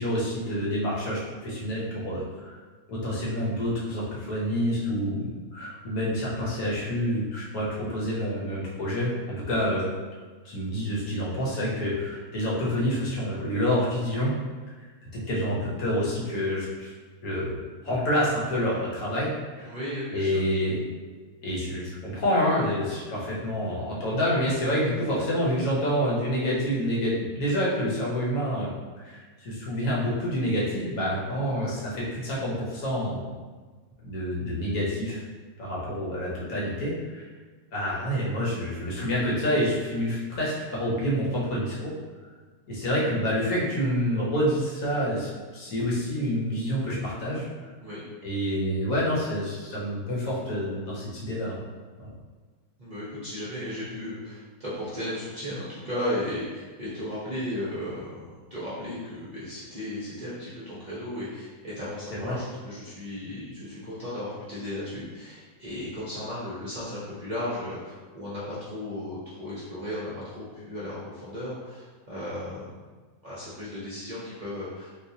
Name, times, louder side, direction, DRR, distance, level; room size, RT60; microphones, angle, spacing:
voice 1, 0.0-2.6 2.9-9.9 10.4-14.3 15.1-16.9 17.2-17.5 17.8-19.7 20.1-20.8 21.4-28.7 29.0-33.3 34.0-35.2 35.6-37.2 37.7-41.9 42.7-47.5 48.2-51.6 62.2-62.4, equal, 70° left, -6 dB, 1.4 m, -28 dB
voice 2, 19.6-20.4 47.8-48.0 52.8-72.7 73.2-74.9, left 1 dB, 40° right, -10 dB, 0.6 m, -35 dB
3.9 x 2.4 x 2.7 m, 1.4 s
omnidirectional pair, 1.6 m